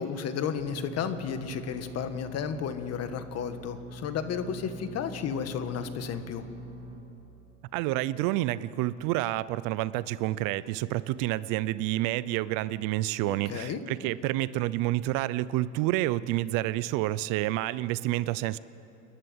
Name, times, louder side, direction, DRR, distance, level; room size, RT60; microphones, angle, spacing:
voice 1, 0.0-6.4 13.3-13.8, left 7 dB, 40° left, 9 dB, 1.7 m, -33 dB
sound 1, 0.5-7.0, right 1 dB, 35° right, 4.7 m, -44 dB
voice 2, 7.7-18.6, right 16 dB, 60° right, 18 dB, 0.7 m, -29 dB
29.0 x 11.5 x 9.6 m, 2.9 s
supercardioid pair, 115°, 38 cm